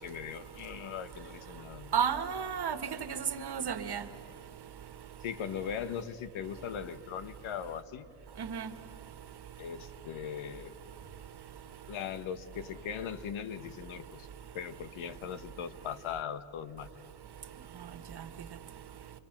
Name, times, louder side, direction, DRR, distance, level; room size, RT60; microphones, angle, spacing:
voice 1, 0.0-1.9 5.2-8.1 9.6-10.7 11.9-14.3 14.5-16.9, left 8 dB, 70° left, 13 dB, 1.3 m, -39 dB
voice 2, 1.9-4.0 8.4-8.7, right 7 dB, 50° right, 10 dB, 1.7 m, -32 dB
28.5 x 24.0 x 6.0 m, 2.6 s
supercardioid pair, 60°, 50 cm